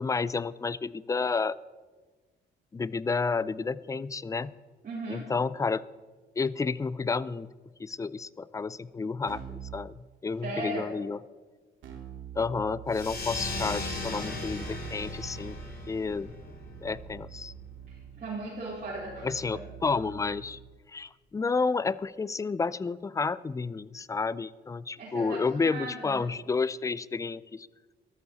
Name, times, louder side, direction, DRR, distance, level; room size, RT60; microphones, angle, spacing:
voice 1, 0.0-1.6 2.7-4.5 5.1-5.8 6.4-7.5 7.8-11.2 12.4-15.6 15.9-16.3 16.8-17.5 19.2-20.6 20.9-27.7, left 4 dB, 15° left, 19 dB, 0.4 m, -30 dB
voice 2, 4.8-5.3 10.4-10.9 17.9-19.6 25.0-26.3, right 2 dB, 40° right, -9 dB, 4.4 m, -37 dB
Keyboard (musical), 9.3-9.8 11.8-20.7, right 10 dB, 75° right, 2.3 m, -46 dB
sound 1, 12.9-18.0, left 2 dB, 50° left, 3.2 m, -37 dB
13.5 x 13.5 x 4.1 m, 1.3 s
cardioid pair, 90°, 20 cm